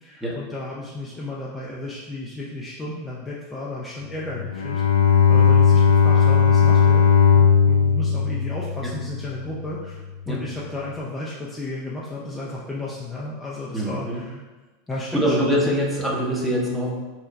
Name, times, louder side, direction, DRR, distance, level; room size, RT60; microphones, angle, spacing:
voice 1, 0.0-4.8 5.3-7.1 7.3-10.0 10.3-14.4 14.9-15.6, left 2 dB, 15° left, -6 dB, 0.6 m, -33 dB
Bowed string instrument, 4.3-9.5, left 6 dB, 90° left, 0.3 m, -17 dB
voice 2, 13.7-14.2 15.1-16.9, equal, 10° right, -3 dB, 0.9 m, -24 dB
3.2 x 2.3 x 4.1 m, 1.2 s
hypercardioid pair, 90°, 0 cm